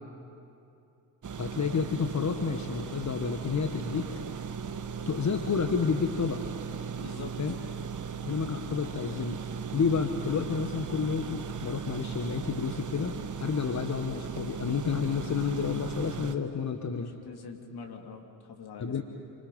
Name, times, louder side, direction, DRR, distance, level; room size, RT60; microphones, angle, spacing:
sound 1, 1.2-16.4, right 6 dB, 40° right, 1.4 m, -37 dB
voice 1, 1.4-4.1 5.1-6.4 7.4-7.5 8.2-9.4 9.7-13.1 13.4-17.1 18.8-19.0, left 6 dB, 35° left, 5 dB, 1.6 m, -30 dB
voice 2, 7.0-7.3 17.0-18.9, left 5 dB, 50° left, 3 dB, 3.0 m, -44 dB
27.5 x 25.5 x 5.5 m, 2.7 s
figure-of-eight pair, 40°, 48 cm